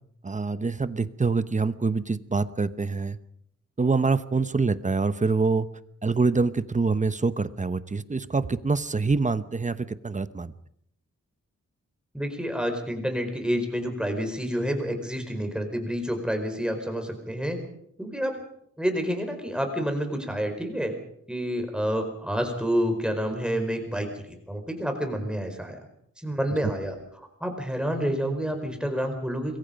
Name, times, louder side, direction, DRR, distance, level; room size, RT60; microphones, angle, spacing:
voice 1, 0.2-3.2 3.8-5.7 6.0-10.5 26.6-26.7, right 4 dB, 25° right, 13 dB, 0.9 m, -25 dB
voice 2, 12.1-17.6 18.0-18.4 18.8-20.9 21.3-25.8 26.2-29.6, equal, 5° right, 5 dB, 4.6 m, -29 dB
26.0 x 22.5 x 5.3 m, 0.70 s
wide cardioid pair, 155°, 29 cm